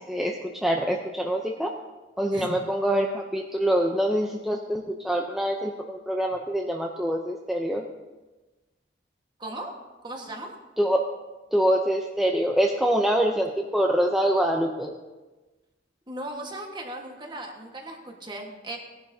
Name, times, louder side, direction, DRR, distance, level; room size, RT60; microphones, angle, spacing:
voice 1, 0.0-1.7 2.2-7.8 10.8-11.0 11.5-14.9, equal, ahead, 0 dB, 0.6 m, -25 dB
voice 2, 9.4-9.7 10.0-10.5 16.1-18.8, right 1 dB, 25° right, 1 dB, 1.4 m, -37 dB
18.0 x 10.5 x 2.7 m, 1.2 s
head